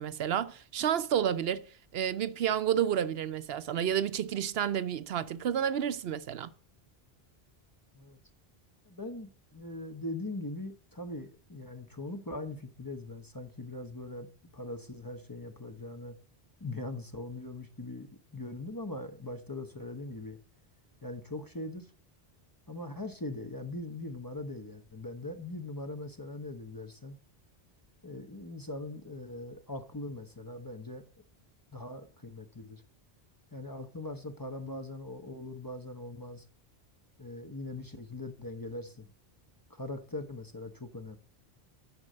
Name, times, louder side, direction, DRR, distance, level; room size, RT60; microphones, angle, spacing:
voice 1, 0.0-1.6 1.9-6.5, right 9 dB, 75° right, 0.8 m, -30 dB
voice 2, 8.8-14.3 14.5-16.2 16.6-20.4 21.0-21.9 22.7-27.2 28.0-31.0 31.7-32.8 33.5-36.5 37.2-39.1 39.7-41.2, left 2 dB, 20° left, 0.8 m, -41 dB
9.5 x 5.2 x 7.6 m
omnidirectional pair, 1.0 m